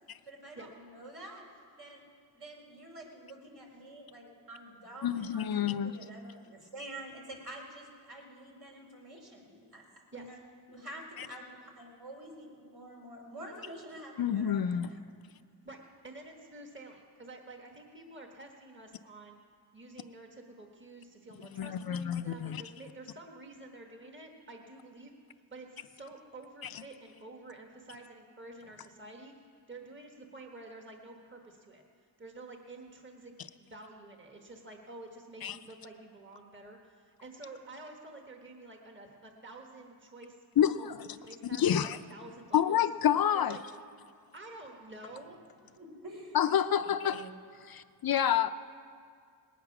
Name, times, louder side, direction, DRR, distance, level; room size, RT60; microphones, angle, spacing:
voice 1, 0.2-1.4 1.7-2.0 2.3-10.4 10.7-15.0 45.8-46.5 46.7-47.3, right 1 dB, 65° right, -1 dB, 3.3 m, -48 dB
voice 2, 5.0-5.9 11.2-11.3 14.2-14.9 21.5-22.6 35.4-35.6 40.6-41.1 41.4-42.0 42.5-43.6 46.3-47.2 47.7-48.5, left 9 dB, 60° left, 11 dB, 0.5 m, -28 dB
voice 3, 15.6-19.4 19.7-25.1 25.5-29.3 29.7-31.8 32.2-33.3 33.6-40.4 40.7-42.8 43.3-43.6 43.9-44.0 44.3-45.4 45.6-45.8, right 2 dB, 30° right, 2 dB, 1.4 m, -49 dB
19.5 x 9.2 x 5.9 m, 2.1 s
wide cardioid pair, 110°, 41 cm